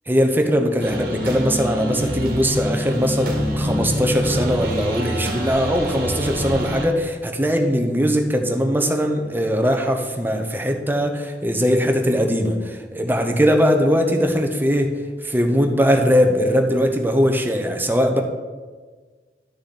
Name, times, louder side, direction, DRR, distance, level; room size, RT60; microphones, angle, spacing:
voice 1, 0.1-14.9 15.2-18.2, equal, 10° right, 4 dB, 0.8 m, -20 dB
sound 1, 0.8-6.9, equal, 60° right, 1.6 m, -26 dB
11.5 x 6.3 x 4.2 m, 1.4 s
head